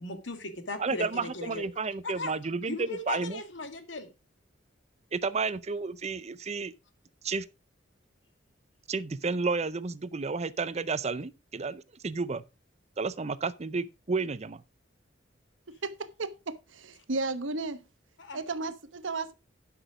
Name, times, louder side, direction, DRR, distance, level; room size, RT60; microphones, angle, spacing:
voice 1, 0.0-1.6 2.0-4.1 18.2-18.4, left 2 dB, 70° left, 2.0 m, -38 dB
voice 2, 0.8-3.4 5.1-6.7 7.2-7.5 8.9-12.4 13.0-14.6, right 4 dB, 35° right, 0.6 m, -31 dB
voice 3, 15.8-17.8 18.3-19.3, right 3 dB, 85° right, 1.1 m, -34 dB
11.5 x 6.1 x 4.8 m
head